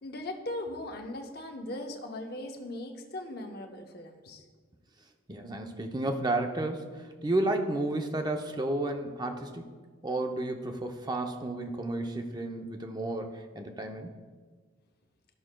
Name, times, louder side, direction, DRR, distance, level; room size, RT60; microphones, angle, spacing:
voice 1, 0.0-4.4, left 1 dB, 50° left, 3 dB, 0.8 m, -39 dB
voice 2, 5.3-9.7 10.0-14.1, right 2 dB, 20° right, 4 dB, 0.6 m, -32 dB
13.5 x 6.1 x 2.2 m, 1.5 s
head